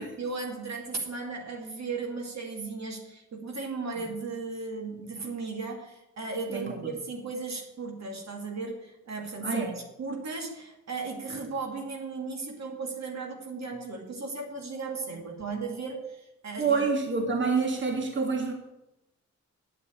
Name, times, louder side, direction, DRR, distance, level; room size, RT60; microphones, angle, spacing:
voice 1, 0.0-16.8, right 4 dB, 65° right, 1 dB, 2.4 m, -36 dB
voice 2, 6.5-6.9 9.4-9.8 16.6-18.5, right 4 dB, 40° right, 2 dB, 2.1 m, -27 dB
8.2 x 7.5 x 8.8 m, 0.95 s
cardioid pair, 60°, 30 cm